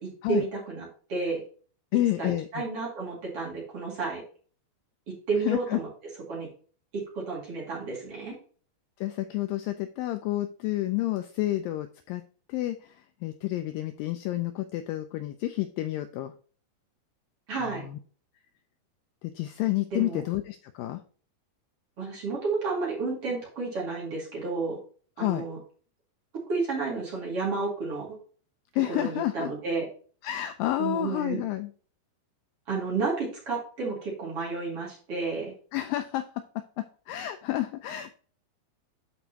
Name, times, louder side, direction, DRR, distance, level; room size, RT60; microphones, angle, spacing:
voice 1, 0.0-1.4 2.2-4.2 5.3-5.9 6.3-6.5 6.9-8.4 17.5-17.9 19.9-20.2 22.0-24.8 25.2-25.6 26.5-28.1 28.9-29.9 30.8-31.4 32.7-35.5, right 4 dB, 40° right, -4 dB, 2.9 m, -31 dB
voice 2, 1.9-2.6 5.5-5.8 9.0-12.2 12.5-16.3 17.7-18.0 19.2-21.0 25.2-25.5 28.8-29.5 30.2-31.7 35.7-36.2 36.8-38.2, left 15 dB, 85° left, 9 dB, 2.1 m, -30 dB
12.0 x 4.6 x 2.8 m, 0.42 s
omnidirectional pair, 4.5 m